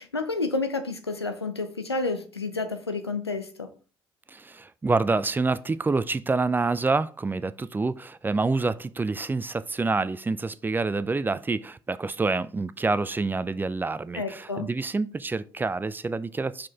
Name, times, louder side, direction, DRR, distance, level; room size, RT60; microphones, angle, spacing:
voice 1, 0.0-3.7 14.1-14.7, left 3 dB, 90° left, 0.5 m, -30 dB
voice 2, 4.3-16.7, right 3 dB, 15° right, 0.4 m, -27 dB
5.8 x 4.9 x 3.5 m
figure-of-eight pair, 50°, 13 cm